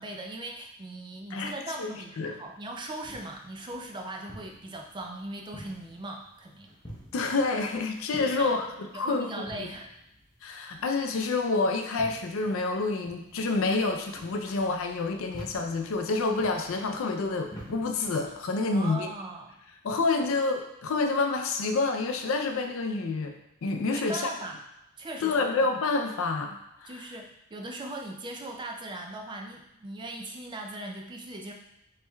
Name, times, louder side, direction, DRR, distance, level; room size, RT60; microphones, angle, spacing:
voice 1, 0.0-6.7 8.2-8.6 8.9-9.9 18.7-19.5 20.2-20.3 23.9-24.6 25.0-25.4 26.9-31.5, right 2 dB, 20° right, 2 dB, 0.4 m, -39 dB
sound 1, 2.5-18.4, equal, 20° left, 0.7 m, -50 dB
voice 2, 7.1-9.3 9.6-9.7 10.4-19.1 19.8-23.3 23.6-24.3 25.2-26.9, left 3 dB, 65° left, 4 dB, 0.4 m, -28 dB
4.4 x 3.2 x 2.2 m, 0.88 s
head